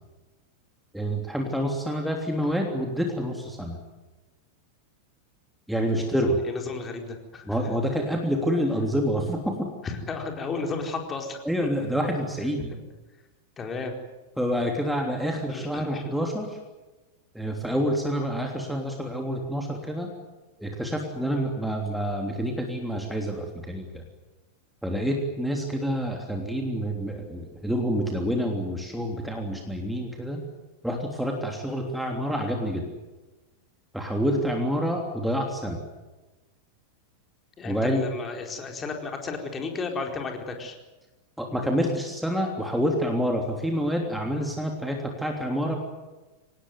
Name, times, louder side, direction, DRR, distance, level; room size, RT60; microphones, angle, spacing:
voice 1, 0.9-3.8 5.7-6.4 7.5-9.7 11.4-12.7 14.4-16.6 17.3-20.1 20.6-24.0 24.8-30.4 30.8-32.9 33.9-35.8 37.6-38.0 41.4-45.8, equal, ahead, 2 dB, 3.3 m, -27 dB
voice 2, 6.0-7.5 9.8-11.4 13.6-13.9 15.5-16.0 37.6-40.8, left 4 dB, 20° left, 3 dB, 4.4 m, -33 dB
25.0 x 19.5 x 9.4 m, 1.1 s
figure-of-eight pair, 90°, 0 cm